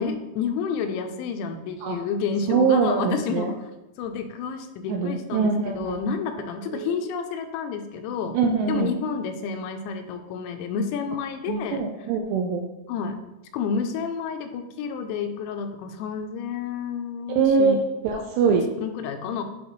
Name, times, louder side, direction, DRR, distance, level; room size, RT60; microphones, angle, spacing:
voice 1, 0.0-3.7 4.0-8.4 8.7-12.1 12.9-13.2 13.5-17.8 18.1-18.3 18.8-19.4, left 6 dB, 85° left, 6 dB, 2.8 m, -30 dB
voice 2, 2.5-3.5 4.9-6.0 6.7-6.9 8.3-8.9 11.5-12.7 17.4-17.8 18.0-18.7, right 5 dB, 80° right, 3 dB, 2.5 m, -23 dB
11.0 x 3.9 x 3.1 m, 0.97 s
omnidirectional pair, 5.4 m